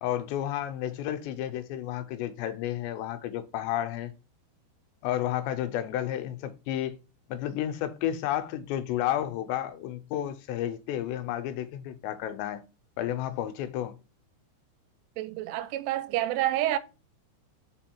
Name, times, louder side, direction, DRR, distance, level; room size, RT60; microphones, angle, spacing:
voice 1, 0.0-4.1 5.0-7.0 7.3-12.6 13.0-14.0, left 11 dB, 90° left, 3.0 m, -31 dB
voice 2, 15.2-16.8, right 14 dB, 90° right, 2.8 m, -28 dB
5.4 x 5.0 x 4.4 m
omnidirectional pair, 4.9 m